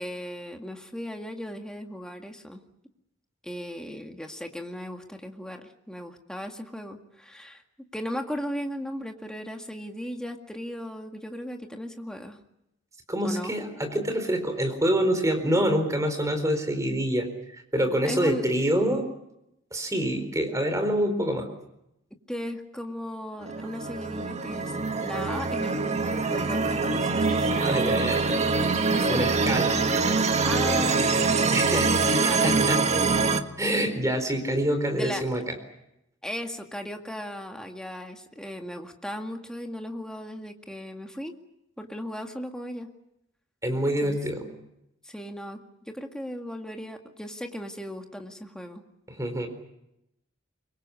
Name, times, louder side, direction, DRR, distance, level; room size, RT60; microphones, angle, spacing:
voice 1, 0.0-2.6 3.4-12.4 13.2-13.6 18.0-18.5 22.3-24.8 25.0-28.1 28.9-29.2 30.4-32.6 34.9-35.2 36.2-41.4 41.8-42.9 44.0-44.7 45.0-48.8, equal, 5° left, 3 dB, 2.0 m, -37 dB
voice 2, 13.1-17.3 17.5-19.0 19.7-21.5 27.6-28.4 29.1-29.8 31.5-32.8 33.6-35.5 43.6-44.5 49.1-49.5, equal, 15° right, 6 dB, 4.3 m, -26 dB
sound 1, 23.4-33.4, right 4 dB, 35° right, 1.5 m, -24 dB
25.0 x 23.0 x 8.4 m, 0.83 s
head